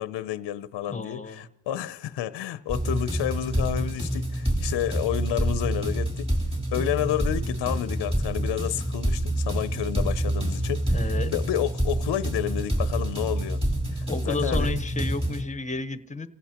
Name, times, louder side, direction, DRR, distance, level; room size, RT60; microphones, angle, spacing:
voice 1, 0.0-6.3 6.7-13.6 13.9-14.7, left 12 dB, 60° left, 0.7 m, -30 dB
voice 2, 0.9-1.5 10.9-11.3 14.1-16.3, left 3 dB, 15° left, 1.0 m, -31 dB
sound 1, 2.7-15.4, right 1 dB, 10° right, 3.6 m, -27 dB
29.5 x 16.5 x 2.9 m
cardioid pair, 105°, 47 cm